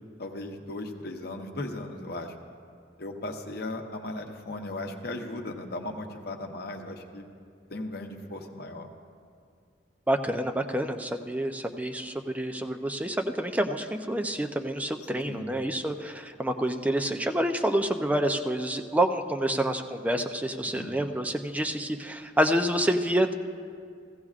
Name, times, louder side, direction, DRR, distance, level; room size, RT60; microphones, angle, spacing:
voice 1, 0.2-2.3 3.0-7.3 7.7-8.9 15.3-15.5 20.6-20.9, left 2 dB, 60° left, 3 dB, 0.9 m, -37 dB
voice 2, 10.1-23.3, right 1 dB, 10° right, 5 dB, 0.5 m, -28 dB
16.0 x 15.0 x 2.4 m, 2.2 s
head